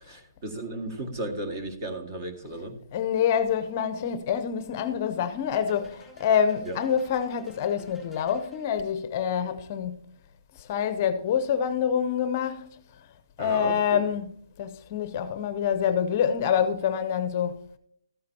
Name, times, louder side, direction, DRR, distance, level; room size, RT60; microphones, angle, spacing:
voice 1, 0.0-2.8 6.6-6.8 13.4-14.1, right 2 dB, 40° right, 1.9 m, -35 dB
voice 2, 2.9-10.0 10.6-12.7 13.4-14.3 14.6-17.6, left 8 dB, 30° left, 0.6 m, -26 dB
sound 1, 5.6-9.0, equal, 5° right, 3.6 m, -52 dB
13.5 x 9.4 x 2.8 m
hypercardioid pair, 155°, 2 cm